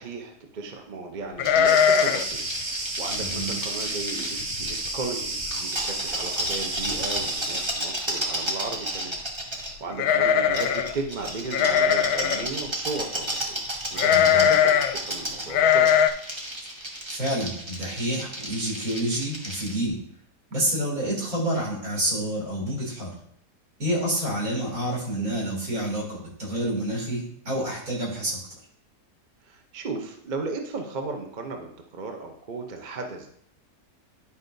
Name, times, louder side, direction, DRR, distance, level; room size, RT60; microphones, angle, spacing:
voice 1, 0.0-2.4 2.7-9.2 9.4-13.6 13.9-15.9 25.2-25.3 29.4-33.3, right 3 dB, 40° right, 3 dB, 0.6 m, -35 dB
sound 1, 1.4-2.4 2.6-2.7 3.2-3.5 4.0-4.1 4.4-4.9 5.2-5.3 6.4-6.5 6.8-7.3 9.9-10.9 11.5-12.5 14.0-14.9 15.5-16.1, left 8 dB, 70° left, 1.0 m, -20 dB
sound 2, 1.4-4.9 5.3-9.7 10.5-19.8, right 1 dB, 20° right, 1.2 m, -33 dB
Cricket, 1.6-7.7, right 2 dB, 75° right, 2.4 m, -32 dB
voice 2, 3.2-3.6 14.1-14.5 17.1-20.0 20.5-23.1 23.8-28.4, right 1 dB, 60° right, -4 dB, 3.3 m, -28 dB
10.5 x 5.5 x 2.6 m, 0.67 s
omnidirectional pair, 1.8 m